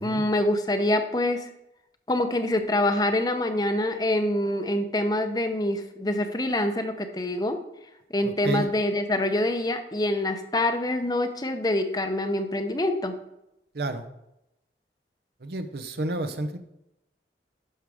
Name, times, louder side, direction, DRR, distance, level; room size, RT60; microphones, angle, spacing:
voice 1, 0.0-1.4 2.1-7.6 8.1-13.1, left 1 dB, 20° left, 7 dB, 0.7 m, -25 dB
voice 2, 8.2-8.7 13.7-14.0 15.4-16.6, right 2 dB, 65° right, 9 dB, 0.8 m, -30 dB
11.0 x 6.3 x 3.6 m, 0.85 s
head